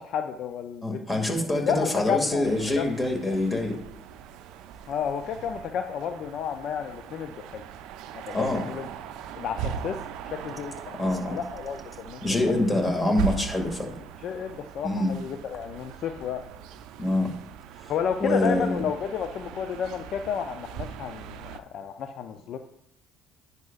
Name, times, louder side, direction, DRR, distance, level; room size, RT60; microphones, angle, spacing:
voice 1, 0.0-1.0 1.7-2.5 2.8-2.9 4.9-7.6 8.1-8.9 9.3-10.0 10.3-12.5 14.2-16.4 17.9-22.6, left 7 dB, 60° left, 8 dB, 0.5 m, -31 dB
voice 2, 0.8-3.8 8.3-8.6 10.9-11.4 12.2-14.0 14.8-15.1 17.0-17.3 18.2-18.8, left 1 dB, 25° left, 3 dB, 2.2 m, -25 dB
sound 1, 2.4-21.6, right 8 dB, 70° right, 0.4 m, -40 dB
10.5 x 6.8 x 2.4 m, 0.71 s
hypercardioid pair, 60°, 0 cm